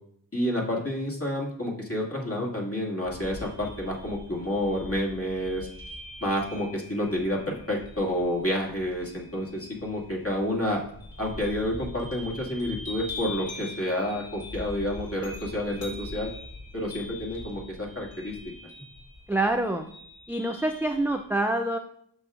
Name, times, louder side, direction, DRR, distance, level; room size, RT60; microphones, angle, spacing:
voice 1, 0.3-5.7 6.2-10.8 11.2-16.3 16.7-18.4, left 1 dB, 30° left, -2 dB, 2.3 m, -29 dB
sound 1, 3.0-21.2, left 2 dB, 50° left, 2.7 m, -43 dB
voice 2, 19.3-19.9 20.3-21.8, right 1 dB, 5° right, 4 dB, 0.5 m, -26 dB
8.6 x 6.5 x 2.5 m, 0.66 s
wide cardioid pair, 45°, 44 cm